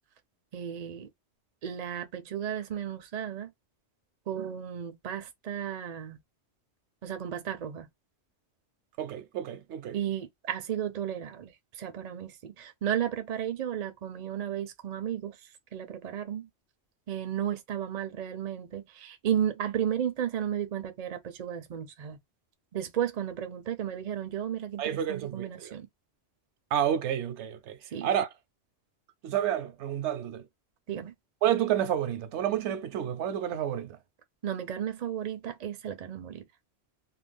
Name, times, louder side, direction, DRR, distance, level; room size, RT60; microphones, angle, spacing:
voice 1, 0.5-1.1 1.6-3.5 4.3-6.2 7.0-7.9 9.9-16.5 17.1-22.2 22.7-25.9 27.8-28.1 30.9-31.1 34.4-36.4, right 9 dB, 50° right, 0.5 m, -34 dB
voice 2, 9.0-10.0 24.8-25.7 26.7-28.3 29.2-30.5 31.4-34.0, right 10 dB, 80° right, 0.9 m, -30 dB
2.4 x 2.2 x 3.3 m
omnidirectional pair, 1.2 m